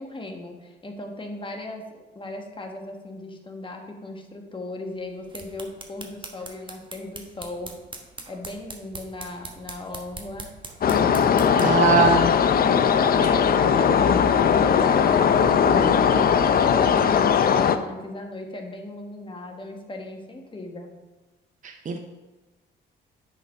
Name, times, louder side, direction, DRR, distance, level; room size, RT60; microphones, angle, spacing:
voice 1, 0.0-1.8 2.1-7.7 8.3-10.5 11.2-12.3 13.0-20.9, left 2 dB, 25° left, 2 dB, 1.3 m, -37 dB
sound 1, 5.1-11.8, right 3 dB, 25° right, 1.2 m, -42 dB
sound 2, 10.8-17.8, left 7 dB, 50° left, 0.6 m, -19 dB
voice 2, 11.6-12.3 21.6-22.0, right 5 dB, 40° right, 4 dB, 0.7 m, -21 dB
10.0 x 4.0 x 5.2 m, 1.2 s
cardioid pair, 90°, 20 cm